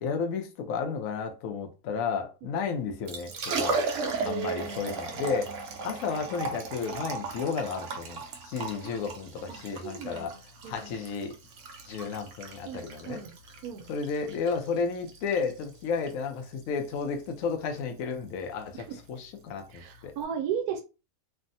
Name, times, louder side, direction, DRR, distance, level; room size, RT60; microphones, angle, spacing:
voice 1, 0.0-3.8 4.2-10.3 10.7-11.4 11.9-13.2 13.9-20.1, left 5 dB, 70° left, 0.9 m, -32 dB
Liquid, 2.9-20.2, right 4 dB, 65° right, 0.9 m, -37 dB
voice 2, 4.2-4.8 9.5-10.3 10.6-11.0 12.7-13.3 13.6-13.8 18.7-19.0 19.7-20.8, right 8 dB, 85° right, 1.1 m, -36 dB
3.3 x 2.0 x 2.6 m
omnidirectional pair, 1.6 m